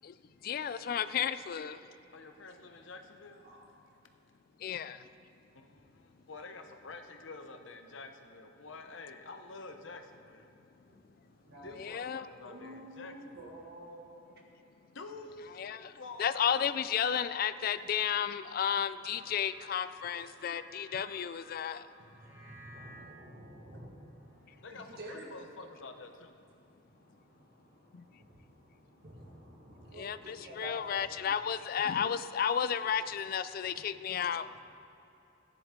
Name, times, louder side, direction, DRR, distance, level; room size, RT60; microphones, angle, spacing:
voice 1, 0.4-1.8 4.6-5.0 11.8-12.3 15.6-15.9 16.2-21.9 27.9-28.0 30.0-34.5, left 8 dB, 50° left, 14 dB, 0.3 m, -33 dB
voice 2, 2.1-3.4 5.5-10.5 11.6-13.4 14.9-16.7 17.0-17.3 24.6-26.4, left 3 dB, 70° left, 6 dB, 0.8 m, -48 dB
voice 3, 10.9-11.8 12.4-14.4, right 1 dB, 80° right, -4 dB, 2.7 m, -50 dB
sound 1, 18.1-22.9, equal, 10° right, 2.3 m, -57 dB
voice 4, 22.3-25.3 26.9-31.4 31.9-32.0 33.6-34.1 34.4-34.6, equal, 55° right, 0 dB, 1.6 m, -51 dB
14.0 x 9.9 x 3.7 m, 3.0 s
head